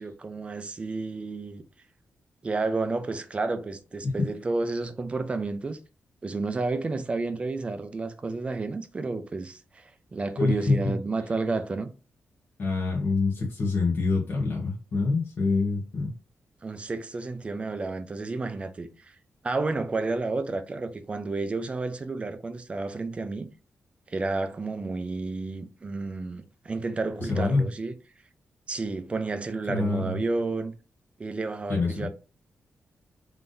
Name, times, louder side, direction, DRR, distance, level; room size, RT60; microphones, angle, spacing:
voice 1, 0.0-1.6 2.4-5.8 6.2-11.9 16.6-19.2 19.4-23.5 24.1-27.9 28.7-30.7 31.2-32.1, right 3 dB, 25° right, 0.5 m, -31 dB
voice 2, 10.4-10.9 12.6-16.1 27.3-27.7 29.7-30.2 31.7-32.1, left 3 dB, 45° left, 1.1 m, -26 dB
3.8 x 3.4 x 2.6 m
wide cardioid pair, 160°, 5 cm